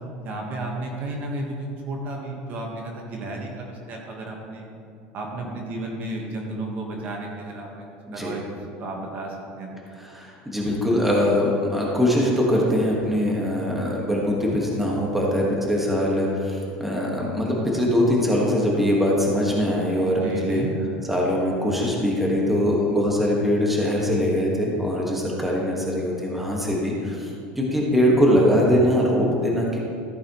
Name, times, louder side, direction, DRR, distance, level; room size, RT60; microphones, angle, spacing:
voice 1, 0.2-4.7 5.1-7.8 8.1-9.8 20.2-20.7, right 2 dB, 40° right, 0 dB, 1.4 m, -33 dB
voice 2, 10.0-20.6 21.1-27.3 27.6-29.8, equal, 5° right, -3 dB, 1.6 m, -22 dB
14.0 x 8.4 x 3.1 m, 2.5 s
cardioid pair, 150°, 4 cm